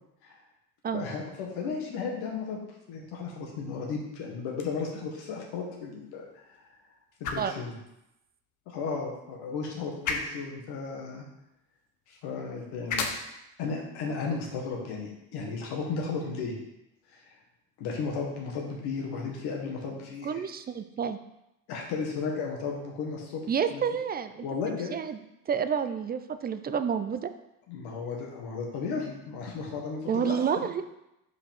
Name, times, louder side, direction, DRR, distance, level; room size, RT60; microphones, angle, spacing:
voice 1, 0.9-2.6 2.9-6.4 7.2-7.7 8.7-11.2 12.1-13.1 13.6-16.5 17.1-17.2 17.8-20.4 21.7-23.4 23.7-23.8 24.4-24.9 27.7-30.7, left 5 dB, 65° left, -1 dB, 1.7 m, -34 dB
sound 1, 4.4-16.5, left 4 dB, 45° left, 0.9 m, -41 dB
voice 2, 20.2-21.2 23.5-25.2 25.5-27.3 30.1-30.8, right 7 dB, 25° right, 10 dB, 0.5 m, -29 dB
5.3 x 4.8 x 3.7 m, 0.87 s
hypercardioid pair, 65°, 41 cm